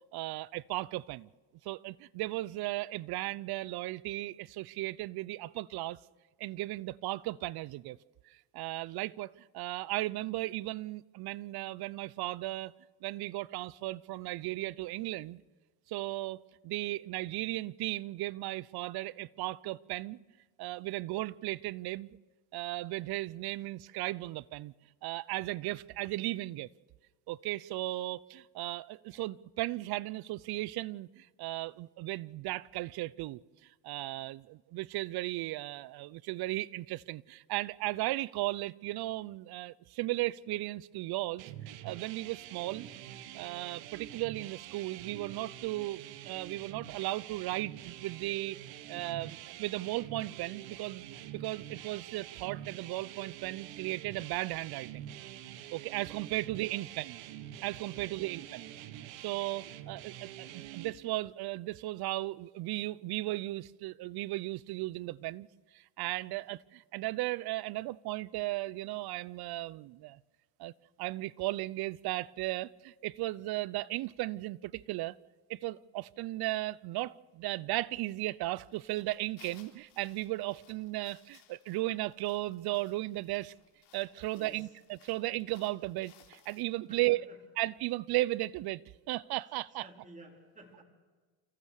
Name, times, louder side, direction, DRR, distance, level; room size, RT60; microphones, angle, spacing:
voice 1, 0.1-1.3 1.6-6.0 6.4-8.0 8.3-12.7 13.0-15.4 15.9-20.2 20.6-22.2 22.5-24.7 25.0-26.7 27.3-33.4 33.8-41.5 41.8-42.9 43.4-48.6 48.9-51.1 51.3-55.1 55.7-57.2 57.6-58.7 59.2-65.5 65.7-70.2 70.6-70.7 71.0-75.2 75.5-83.5 83.9-87.3 87.6-88.8 89.1-89.9, right 18 dB, 55° right, 0.7 m, -36 dB
sound 1, 41.4-60.9, right 12 dB, 75° right, 1.5 m, -46 dB
voice 2, 58.0-58.3 84.3-84.7 86.9-87.4 89.8-90.8, right 2 dB, 15° right, 4.6 m, -54 dB
sound 2, 78.5-86.6, left 9 dB, 65° left, 4.0 m, -63 dB
29.5 x 15.0 x 6.5 m
cardioid pair, 115°, 45 cm